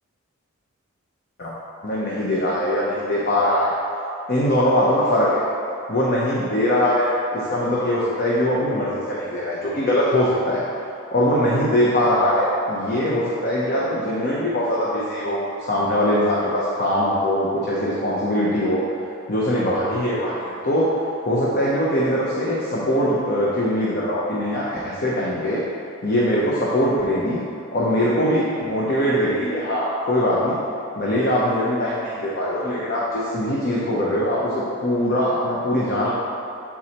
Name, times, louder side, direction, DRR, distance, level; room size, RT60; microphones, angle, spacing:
voice 1, 1.8-3.7 4.3-5.4 5.9-10.6 11.1-18.8 19.3-20.9 21.2-25.6 26.0-27.4 27.7-30.6 31.0-36.1, equal, 45° left, -6 dB, 0.8 m, -22 dB
7.1 x 4.7 x 4.2 m, 2.7 s
head